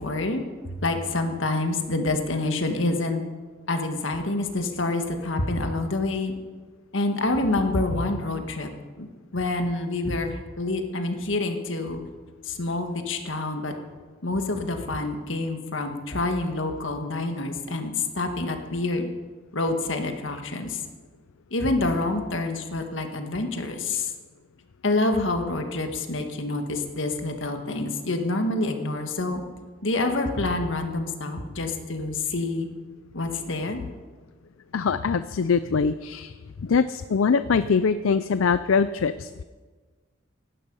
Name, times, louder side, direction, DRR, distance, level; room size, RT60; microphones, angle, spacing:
voice 1, 0.0-3.2 3.7-6.3 6.9-8.7 9.0-9.1 9.3-12.0 12.5-13.7 14.2-19.1 19.5-20.8 21.5-24.1 24.8-29.4 29.8-32.7 33.1-33.8, left 2 dB, 75° left, 5 dB, 1.7 m, -27 dB
voice 2, 34.7-36.4 36.6-39.4, left 5 dB, 90° left, 13 dB, 0.5 m, -23 dB
16.5 x 12.0 x 5.4 m, 1.4 s
head